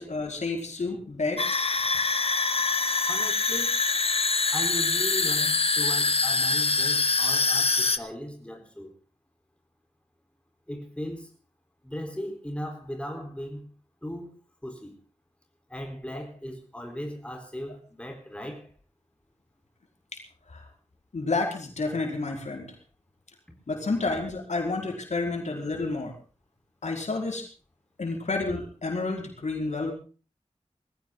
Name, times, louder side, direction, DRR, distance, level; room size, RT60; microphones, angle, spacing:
voice 1, 0.0-1.4 20.1-20.2 20.5-20.6 21.1-22.7 23.7-26.1 26.8-27.5 28.0-29.9, left 3 dB, 90° left, 4.9 m, -30 dB
sound 1, 1.4-8.0, left 3 dB, 55° left, 1.2 m, -24 dB
voice 2, 3.1-3.8 4.5-8.9 10.7-11.3 11.8-13.7 14.0-14.3 14.6-14.9 15.7-18.7, equal, 10° left, 4.2 m, -37 dB
21.0 x 15.5 x 4.0 m
wide cardioid pair, 80°, 12 cm